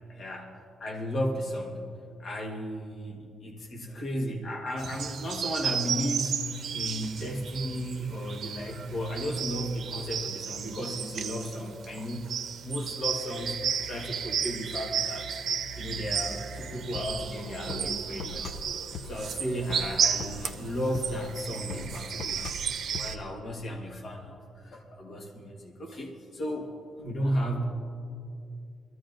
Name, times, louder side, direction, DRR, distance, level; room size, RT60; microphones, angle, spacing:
voice 1, 0.1-1.9 2.2-6.4 6.7-12.3 12.6-15.3 15.8-18.5 19.0-22.5 22.9-26.7 27.0-27.6, equal, 45° left, 1 dB, 1.4 m, -34 dB
sound 1, 4.8-23.2, right 7 dB, 60° right, 0.7 m, -33 dB
sound 2, 16.5-23.2, left 3 dB, 90° left, 0.6 m, -42 dB
22.5 x 14.0 x 2.6 m, 2.4 s
cardioid pair, 155°, 0 cm